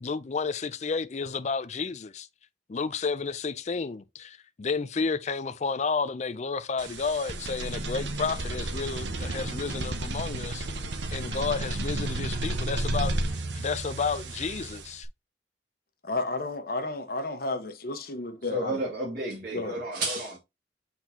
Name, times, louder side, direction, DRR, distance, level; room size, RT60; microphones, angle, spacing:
voice 1, 0.0-2.3 2.7-10.7 11.1-15.1, left 4 dB, 40° left, 0.4 m, -31 dB
sound 1, 6.8-15.0, right 2 dB, 85° right, 1.0 m, -32 dB
voice 2, 16.0-18.8 19.5-19.8, left 2 dB, 55° left, 1.2 m, -32 dB
voice 3, 18.5-20.4, right 2 dB, 55° right, 2.3 m, -31 dB
7.9 x 4.3 x 2.8 m
head